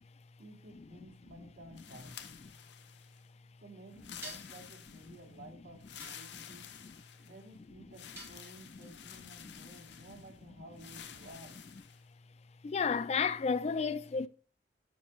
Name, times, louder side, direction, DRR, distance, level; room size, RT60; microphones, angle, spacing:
voice 1, 0.4-2.2 3.6-6.7 7.2-11.6, right 1 dB, 70° right, 2.1 m, -54 dB
sound 1, 1.8-3.3 3.9-5.3 5.8-7.5 7.9-10.3 10.8-12.0, left 9 dB, 75° left, 0.8 m, -51 dB
sound 2, 4.2-4.6 6.0-6.7 8.2-8.9, right 2 dB, 15° right, 2.3 m, -49 dB
voice 2, 6.5-6.9 12.6-14.3, left 5 dB, 35° left, 0.3 m, -32 dB
12.5 x 5.3 x 3.1 m
head